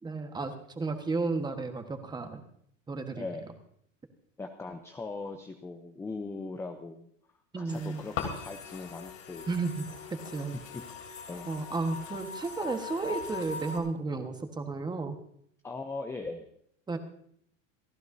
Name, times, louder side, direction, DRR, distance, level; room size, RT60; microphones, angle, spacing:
voice 1, 0.0-2.4 2.9-3.3 7.5-8.0 9.5-10.6 11.4-15.2 16.9-17.0, right 3 dB, 10° right, 6 dB, 1.3 m, -33 dB
voice 2, 3.2-3.5 4.4-7.1 7.6-9.5 11.3-11.5 15.6-16.5, left 3 dB, 5° left, 6 dB, 0.6 m, -39 dB
sound 1, 7.7-13.8, left 5 dB, 85° left, 3.4 m, -41 dB
27.5 x 11.5 x 2.7 m, 0.68 s
supercardioid pair, 145°, 38 cm